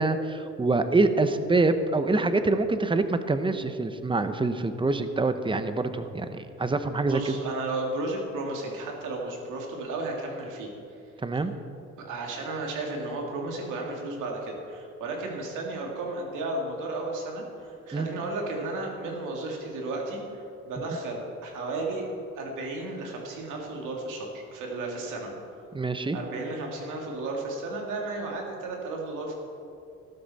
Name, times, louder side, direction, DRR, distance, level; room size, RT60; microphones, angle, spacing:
voice 1, 0.0-7.3 11.2-11.5 17.9-18.1 25.7-26.2, right 3 dB, 15° right, 10 dB, 0.8 m, -25 dB
voice 2, 7.0-10.7 12.0-22.1 22.4-25.3 26.1-29.3, right 2 dB, 90° right, 0 dB, 2.4 m, -33 dB
14.0 x 12.0 x 4.2 m, 2.6 s
cardioid pair, 90°, 30 cm